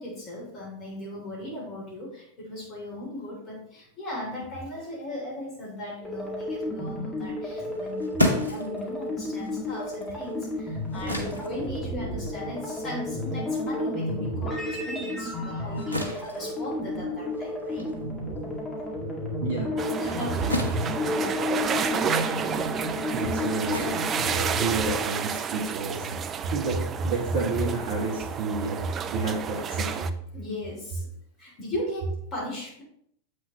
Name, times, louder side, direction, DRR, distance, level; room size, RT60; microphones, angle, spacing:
voice 1, 0.0-17.9 20.0-21.6 30.3-31.1 31.4-32.8, left 1 dB, 30° left, -3 dB, 3.1 m, -37 dB
sound 1, 6.0-25.0, left 1 dB, 15° left, 2.1 m, -31 dB
sound 2, 7.6-14.4 14.8-25.0, left 1 dB, 85° left, 1.1 m, -34 dB
sound 3, 19.8-30.1, right 7 dB, 25° right, 0.4 m, -31 dB
voice 2, 23.1-30.1, right 3 dB, 50° right, -2 dB, 1.4 m, -30 dB
7.8 x 6.6 x 3.0 m, 0.67 s
figure-of-eight pair, 90°, 0 cm